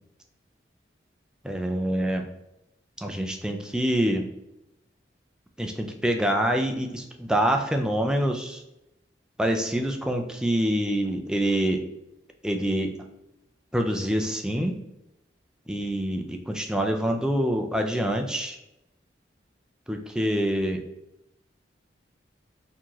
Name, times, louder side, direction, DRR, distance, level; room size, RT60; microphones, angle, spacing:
voice 1, 1.4-2.2 3.0-4.2 5.6-8.6 9.4-11.8 12.4-12.9 13.7-14.7 15.7-18.6 19.9-20.8, equal, 5° right, 3 dB, 0.3 m, -26 dB
4.3 x 2.8 x 3.0 m, 0.89 s
head